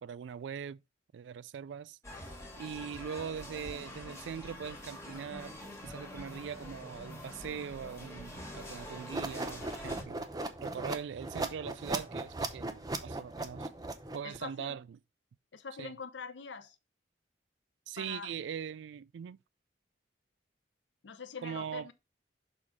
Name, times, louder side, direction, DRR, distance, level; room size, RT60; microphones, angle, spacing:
voice 1, 0.0-0.8 1.1-2.0 2.6-5.6 5.8-10.3 10.6-13.7 14.1-14.8 15.8-16.0 17.9-19.4 21.4-21.9, right 7 dB, 75° right, 0.3 m, -41 dB
sound 1, 2.0-10.0, left 1 dB, 15° left, 1.6 m, -46 dB
sound 2, 9.1-14.4, right 2 dB, 20° right, 0.7 m, -38 dB
voice 2, 14.2-14.8 15.5-16.8 18.0-18.3 21.0-21.9, left 5 dB, 80° left, 0.7 m, -44 dB
6.3 x 3.7 x 4.8 m
head